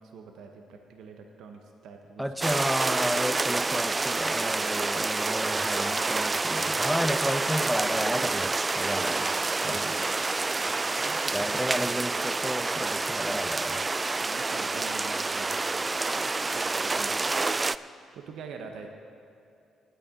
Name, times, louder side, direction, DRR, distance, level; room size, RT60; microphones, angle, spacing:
voice 1, 0.0-2.2 8.8-12.0 12.5-12.8 14.1-18.9, right 5 dB, 70° right, 4 dB, 1.0 m, -46 dB
voice 2, 2.2-9.2 9.6-9.9 11.3-13.9, equal, ahead, 11 dB, 0.8 m, -32 dB
sound 1, 2.4-17.8, right 3 dB, 30° right, 0.3 m, -28 dB
19.0 x 9.0 x 3.8 m, 2.5 s
hypercardioid pair, 50°, 0 cm